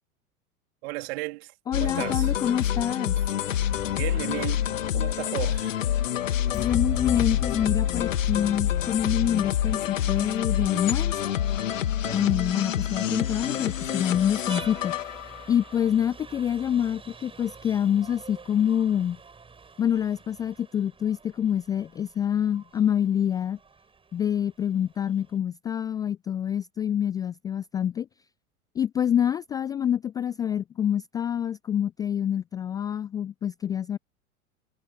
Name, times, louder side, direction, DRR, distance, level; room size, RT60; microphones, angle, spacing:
voice 1, 0.8-2.3 3.8-5.7 12.0-12.2, right 24 dB, 45° right, 3.7 m, -35 dB
sound 1, 1.7-15.6, left 10 dB, 60° left, 2.9 m, -27 dB
voice 2, 1.7-3.2 6.5-11.4 12.1-15.0 15.5-19.2 19.8-23.6 24.1-28.1 28.8-34.0, left 9 dB, 10° left, 0.4 m, -26 dB
sound 2, 3.6-11.6, left 16 dB, 30° left, 4.3 m, -36 dB
Vehicle horn car horn honking, 8.6-25.4, right 4 dB, 10° right, 7.0 m, -49 dB
figure-of-eight pair, 95°, 43 cm